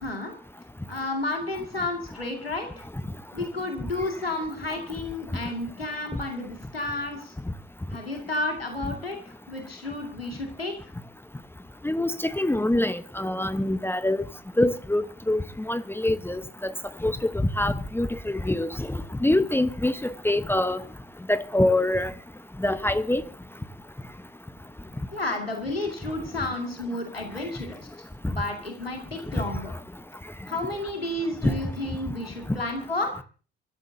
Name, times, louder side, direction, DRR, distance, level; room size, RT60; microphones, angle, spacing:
voice 1, 0.0-0.3 0.9-2.8 3.3-7.3 7.9-10.9 25.1-27.8 28.3-29.7 30.5-33.1, left 2 dB, 90° left, 2.2 m, -31 dB
voice 2, 12.4-14.2 14.6-15.4 15.7-16.7 17.0-17.1 17.6-20.8 21.3-22.1 22.6-23.2 31.4-31.5, left 1 dB, 10° left, 1.1 m, -24 dB
24.0 x 15.0 x 2.8 m
figure-of-eight pair, 50°, 29 cm